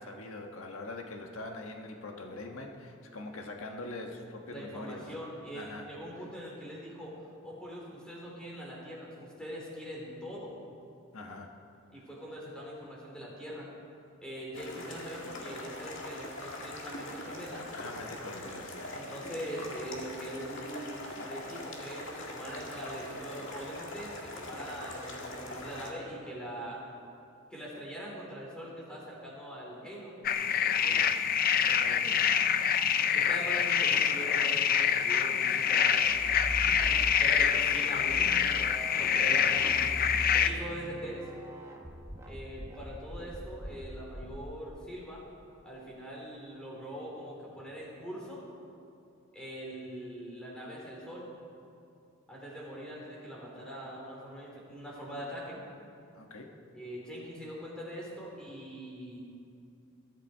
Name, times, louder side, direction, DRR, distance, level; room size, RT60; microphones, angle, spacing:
voice 1, 0.0-5.1 5.5-5.9 6.2-6.3 11.1-11.5 17.7-18.9 30.6-31.1 36.7-37.1 39.0-40.3 56.1-56.5, left 2 dB, 90° left, 2 dB, 1.4 m, -43 dB
voice 2, 4.5-7.1 7.4-10.6 11.9-13.7 14.2-17.6 18.9-26.8 27.5-30.2 31.6-32.2 33.1-36.0 36.8-38.3 39.0-39.8 40.3-41.2 42.2-45.2 45.6-48.4 49.3-51.3 52.3-55.6 56.7-59.2, equal, 5° left, -4 dB, 3.9 m, -42 dB
sound 1, 14.5-25.9, left 1 dB, 65° left, 2.2 m, -42 dB
sound 2, 30.2-40.5, left 8 dB, 45° left, 0.5 m, -26 dB
sound 3, 36.0-37.4 37.9-44.8, equal, 15° right, 1.2 m, -41 dB
21.5 x 13.0 x 4.6 m, 2.6 s
head